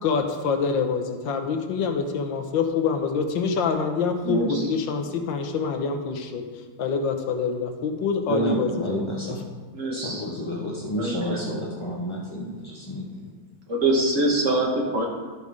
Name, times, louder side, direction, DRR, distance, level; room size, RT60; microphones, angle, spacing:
voice 1, 0.0-6.4 6.8-9.4, left 5 dB, 80° left, 5 dB, 1.5 m, -26 dB
voice 2, 4.2-4.7 9.7-10.2 11.0-11.4 13.7-15.1, right 2 dB, 45° right, 0 dB, 1.5 m, -24 dB
voice 3, 8.3-9.4 9.9-13.2, equal, 30° left, -3 dB, 0.5 m, -29 dB
11.5 x 5.4 x 4.8 m, 1.4 s
omnidirectional pair, 2.1 m